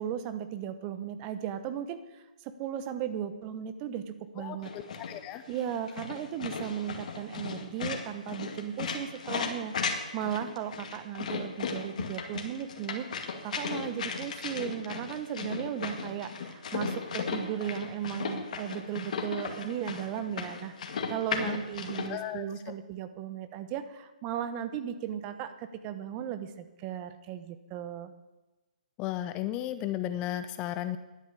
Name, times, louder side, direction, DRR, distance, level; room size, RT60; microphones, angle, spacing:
voice 1, 0.0-4.7 5.5-9.8 10.1-13.1 13.4-20.7 21.1-26.5 26.8-28.1, right 9 dB, 25° right, 11 dB, 1.0 m, -36 dB
voice 2, 4.4-5.4 21.5-21.6 22.1-22.7 29.0-31.0, left 12 dB, 20° left, 11 dB, 0.5 m, -35 dB
sound 1, 4.6-22.1, left 5 dB, 55° left, 2.1 m, -36 dB
11.0 x 9.1 x 8.2 m, 1.1 s
hypercardioid pair, 150°, 5 cm